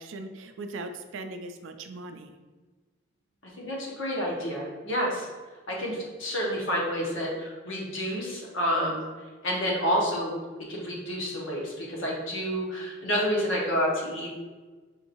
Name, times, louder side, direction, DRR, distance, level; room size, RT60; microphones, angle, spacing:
voice 1, 0.0-2.3, right 2 dB, 60° right, 6 dB, 0.4 m, -39 dB
voice 2, 3.6-5.3 5.7-9.0 9.4-10.3 10.7-14.3, equal, 60° left, -3 dB, 1.1 m, -29 dB
5.5 x 3.0 x 2.6 m, 1.4 s
head